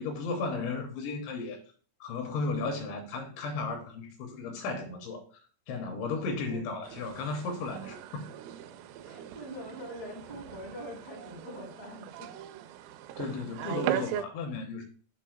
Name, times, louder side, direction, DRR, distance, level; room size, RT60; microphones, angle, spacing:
voice 1, 0.0-1.6 2.0-5.2 5.7-8.3 13.2-14.8, left 3 dB, 80° left, 3.0 m, -34 dB
voice 2, 6.4-6.7 9.0-12.3, equal, 60° right, 0.4 m, -43 dB
sound 1, 6.8-14.2, right 11 dB, 85° right, 3.1 m, -39 dB
7.8 x 2.7 x 5.7 m
omnidirectional pair, 5.9 m